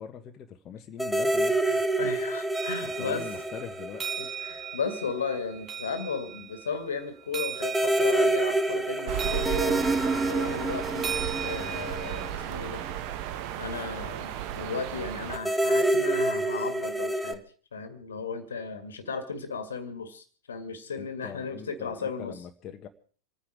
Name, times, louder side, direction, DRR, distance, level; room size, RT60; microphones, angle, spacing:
voice 1, 0.0-1.6 3.0-4.2 21.0-22.9, left 8 dB, 30° left, 4 dB, 1.5 m, -42 dB
sound 1, 1.0-4.7 5.0-5.1 7.6-13.0 15.3-17.3, right 2 dB, ahead, 1.1 m, -27 dB
voice 2, 1.7-3.3 4.2-9.9 10.3-11.1 11.4-12.8 13.6-17.4 17.7-22.4, left 5 dB, 70° left, 10 dB, 2.0 m, -35 dB
sound 2, 2.5-12.2, right 8 dB, 25° right, 2.2 m, -39 dB
sound 3, 9.1-15.4, right 11 dB, 45° right, 1.4 m, -34 dB
26.5 x 9.8 x 4.9 m, 0.42 s
figure-of-eight pair, 90°, 0 cm